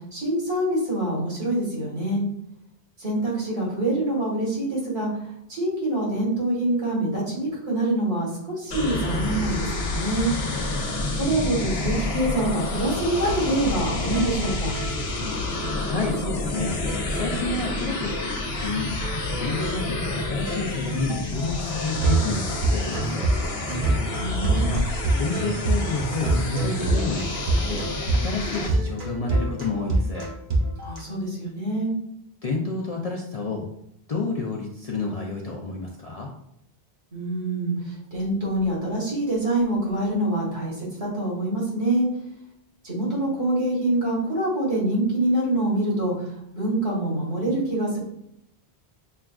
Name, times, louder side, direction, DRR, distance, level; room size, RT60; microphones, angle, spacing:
voice 1, 0.1-2.2 3.0-5.1 5.5-10.3 11.2-14.8 24.2-24.8 30.8-31.9 37.1-42.1 42.8-46.3 46.5-48.0, right 1 dB, 75° right, -4 dB, 1.9 m, -25 dB
sound 1, 8.7-28.7, left 2 dB, 70° left, 0.9 m, -29 dB
voice 2, 11.1-11.5 15.8-16.7 17.1-18.9 19.4-23.3 24.7-24.8 25.2-27.9 28.1-30.2 32.4-33.7 34.1-36.3, left 3 dB, 50° left, -1 dB, 0.4 m, -30 dB
sound 2, 12.5-12.6 12.8-13.0 13.2-13.4 13.7-13.8 14.1-15.8 16.1-16.2 16.5-17.8 18.1-18.3 18.6-18.7 19.0-31.0, right 2 dB, 55° right, 0.9 m, -27 dB
6.4 x 2.3 x 2.3 m, 0.77 s
omnidirectional pair, 1.1 m